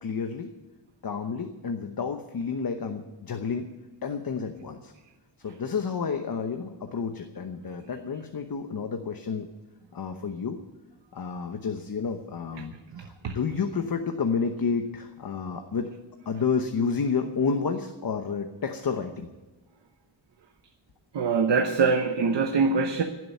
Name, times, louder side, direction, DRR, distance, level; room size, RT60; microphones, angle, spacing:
voice 1, 0.0-0.5 1.0-3.7 4.0-4.9 5.4-9.5 9.9-10.6 11.1-15.9 16.3-19.3, left 5 dB, 55° left, 6 dB, 1.0 m, -30 dB
voice 2, 12.9-13.3 21.1-23.0, right 4 dB, 90° right, 5 dB, 1.1 m, -24 dB
16.0 x 7.8 x 9.2 m, 1.2 s
wide cardioid pair, 170°, 41 cm